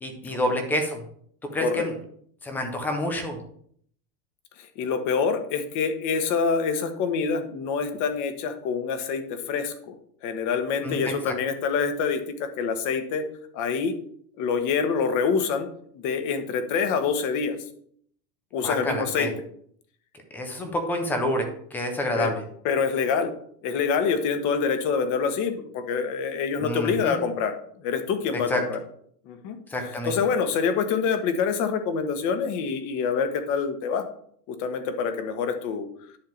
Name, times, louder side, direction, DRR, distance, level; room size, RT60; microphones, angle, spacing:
voice 1, 0.0-1.0 1.5-1.9 2.4-3.4 10.8-11.1 18.6-19.3 20.3-22.4 26.6-27.2 28.5-28.6 29.7-30.1, left 1 dB, 5° left, 5 dB, 0.3 m, -28 dB
voice 2, 4.8-9.9 10.2-13.3 13.5-14.0 14.4-15.7 16.0-17.5 18.5-19.3 22.2-22.3 22.6-23.3 23.6-27.5 27.8-28.8 29.3-29.6 30.1-34.0 34.5-35.9, left 6 dB, 40° left, 8 dB, 1.4 m, -26 dB
10.5 x 3.7 x 7.2 m, 0.63 s
supercardioid pair, 140°, 47 cm